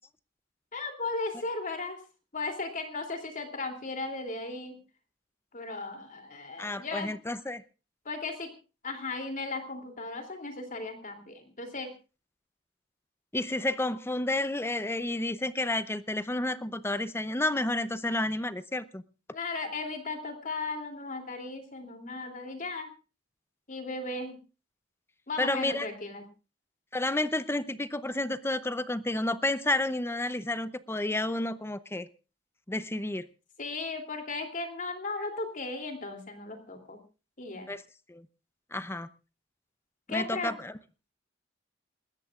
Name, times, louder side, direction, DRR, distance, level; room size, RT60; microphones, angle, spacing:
voice 1, 0.7-2.0 2.3-4.8 5.5-7.2 8.0-8.5 8.8-11.9 19.3-22.9 23.7-24.4 25.3-26.2 33.6-37.0 37.4-37.7 40.1-40.5, left 3 dB, 45° left, 4 dB, 3.0 m, -36 dB
voice 2, 6.6-7.6 13.3-19.0 25.4-25.9 26.9-32.1 32.7-33.3 37.7-37.8 38.1-38.3 38.7-39.1 40.1-40.7, left 2 dB, 15° left, 14 dB, 0.7 m, -30 dB
28.5 x 13.5 x 2.5 m, 0.33 s
head